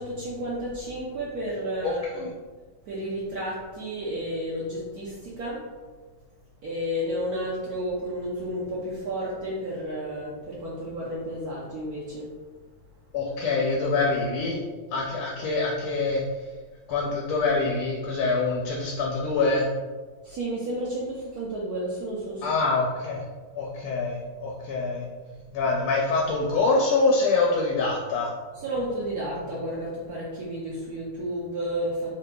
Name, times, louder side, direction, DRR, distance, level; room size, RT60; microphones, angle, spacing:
voice 1, 0.0-2.2 2.9-5.6 6.6-12.3 20.2-22.5 28.5-32.1, right 1 dB, 85° right, -6 dB, 0.8 m, -32 dB
voice 2, 1.8-2.3 13.1-14.6 14.9-16.2 16.9-19.7 22.4-23.2 23.5-25.1 25.5-28.3, left 3 dB, 80° left, -2 dB, 1.5 m, -25 dB
3.9 x 3.4 x 2.2 m, 1.4 s
omnidirectional pair, 2.4 m